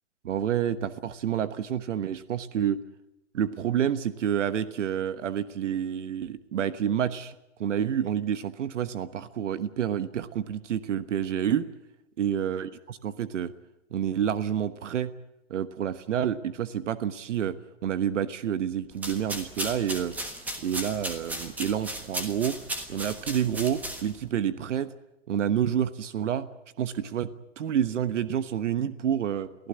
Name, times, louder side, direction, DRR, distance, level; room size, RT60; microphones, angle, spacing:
voice 1, 0.2-2.8 3.3-7.3 7.6-11.7 12.2-13.5 13.9-15.1 15.5-20.1 20.6-22.6 22.9-24.9 25.3-26.5 26.8-29.7, right 9 dB, 75° right, 13 dB, 1.3 m, -28 dB
sound 1, 18.9-24.3, right 1 dB, 5° right, 1.4 m, -36 dB
23.5 x 15.5 x 9.7 m, 0.90 s
hypercardioid pair, 170°, 37 cm